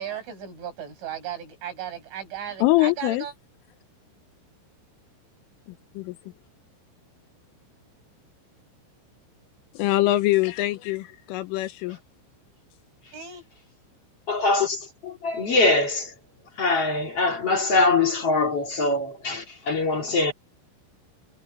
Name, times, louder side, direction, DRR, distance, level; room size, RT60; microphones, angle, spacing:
voice 1, 0.0-3.3 13.1-13.5, right 9 dB, 65° right, 9.8 m, -36 dB
voice 2, 2.6-3.2 6.0-6.1 9.8-12.0, left 17 dB, 80° left, 3.4 m, -23 dB
voice 3, 14.3-16.1 16.6-20.3, left 3 dB, 45° left, 2.2 m, -23 dB
omnidirectional pair, 5.9 m